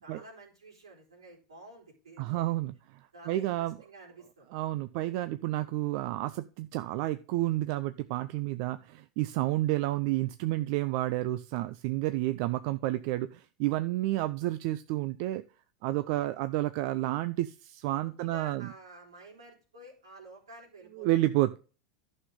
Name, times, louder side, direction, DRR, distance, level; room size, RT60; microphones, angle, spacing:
voice 1, 0.0-2.6 3.1-4.5 18.0-21.1, right 2 dB, 90° right, 0 dB, 4.4 m, -51 dB
voice 2, 2.2-3.8 4.5-15.4 15.8-18.7 20.9-21.6, right 16 dB, 60° right, 11 dB, 0.6 m, -30 dB
11.5 x 6.6 x 3.7 m, 0.34 s
hypercardioid pair, 90°, 3 cm